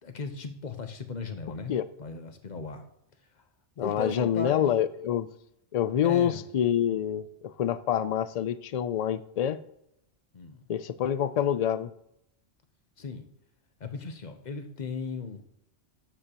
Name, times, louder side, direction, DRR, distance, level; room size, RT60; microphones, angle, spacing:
voice 1, 0.0-2.9 3.2-3.4 3.8-4.8 6.0-6.5 10.3-10.7 13.0-13.3 13.8-15.5, left 4 dB, 40° left, 7 dB, 1.0 m, -37 dB
voice 2, 3.8-5.3 5.7-9.6 10.7-11.9, left 9 dB, 65° left, 14 dB, 0.4 m, -27 dB
13.5 x 7.3 x 3.0 m, 0.79 s
omnidirectional pair, 1.2 m